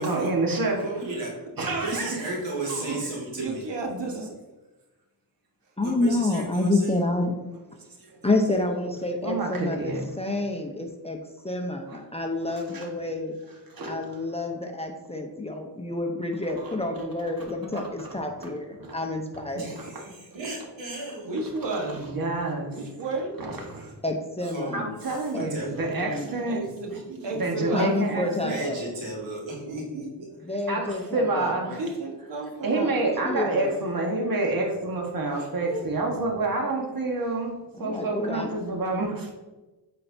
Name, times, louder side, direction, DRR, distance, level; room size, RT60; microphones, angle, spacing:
voice 1, 0.0-0.8 1.6-2.2 2.7-2.9 8.0-8.1 9.2-10.0 12.7-12.9 13.7-14.2 16.6-17.1 17.4-17.5 17.7-18.1 18.4-18.5 18.8-18.9 19.7-19.8 22.0-22.7 23.4-23.9 24.7-26.6 27.4-28.6 30.7-31.8 32.6-37.5 37.8-39.3, right 2 dB, 50° right, 0 dB, 1.5 m, -28 dB
voice 2, 0.8-1.3 1.8-3.7 5.8-7.0 19.5-21.3 24.4-26.1 26.6-27.3 28.4-30.3, right 2 dB, 85° right, -4 dB, 2.1 m, -35 dB
voice 3, 3.3-4.3 21.2-22.0 22.7-23.3 26.5-26.9 27.2-28.0 31.4-31.5 31.8-33.2 35.3-35.8, right 2 dB, 70° right, 0 dB, 1.4 m, -32 dB
voice 4, 5.8-7.3 8.2-11.2 11.4-13.3 13.8-19.8 24.0-24.9 25.3-25.5 26.0-26.3 27.7-29.0 30.4-31.8 32.7-32.9 33.2-33.8 37.8-38.6, left 2 dB, 15° left, 2 dB, 0.8 m, -28 dB
8.4 x 4.5 x 2.7 m, 1.1 s
cardioid pair, 75°, 44 cm